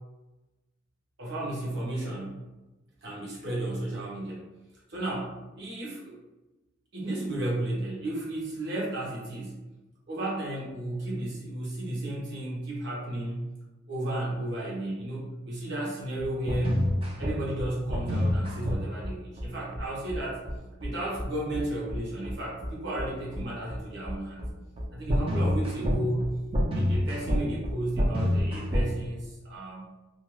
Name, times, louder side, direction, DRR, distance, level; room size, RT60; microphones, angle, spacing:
voice 1, 1.2-2.4 3.0-4.5 4.9-6.2 6.9-9.6 10.1-13.5 13.9-16.8 17.2-20.4 20.8-24.4 24.9-26.4 26.7-29.9, right 1 dB, 60° right, -5 dB, 1.0 m, -33 dB
sound 1, 16.2-28.9, equal, 30° right, 0.5 m, -28 dB
2.5 x 2.3 x 3.1 m, 1.1 s
head